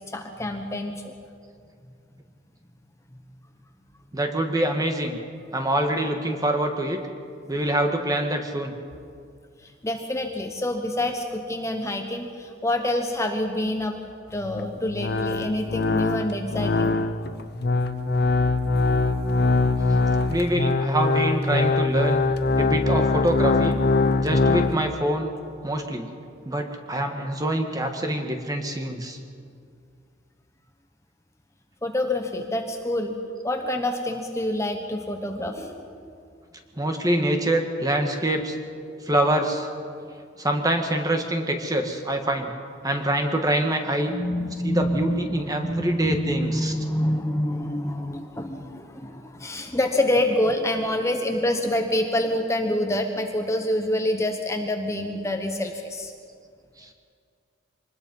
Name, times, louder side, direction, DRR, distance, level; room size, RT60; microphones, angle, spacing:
voice 1, 0.1-1.1 9.6-14.0 14.3-17.0 24.0-24.3 31.8-33.2 33.4-36.1 44.1-56.1, left 1 dB, 15° left, 4 dB, 1.1 m, -27 dB
voice 2, 4.1-5.2 5.5-7.0 7.5-8.7 20.3-22.2 22.6-23.8 24.2-25.3 25.6-26.1 26.4-29.2 36.8-38.5 39.1-39.7 40.4-42.5 42.8-44.1 44.6-46.7, right 1 dB, 20° right, 4 dB, 1.6 m, -25 dB
sound 1, 14.3-24.8, left 3 dB, 60° left, 0.8 m, -23 dB
24.5 x 20.0 x 5.5 m, 2.3 s
head